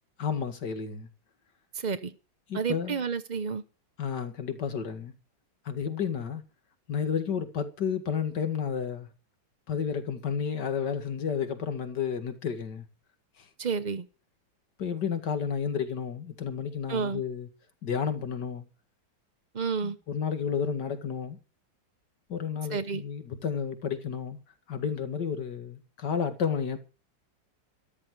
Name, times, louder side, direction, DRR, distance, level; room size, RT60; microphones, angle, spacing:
voice 1, 0.2-1.1 2.5-3.0 4.0-5.1 5.7-6.4 6.9-9.1 9.7-12.9 14.8-17.5 17.8-18.6 19.8-21.4 22.3-24.4 24.7-26.8, left 7 dB, 60° left, 2.5 m, -31 dB
voice 2, 1.7-2.1 2.5-3.6 13.6-14.1 16.9-17.2 19.5-20.0 22.7-23.0, right 5 dB, 40° right, 0.6 m, -30 dB
13.5 x 13.0 x 4.7 m
omnidirectional pair, 2.1 m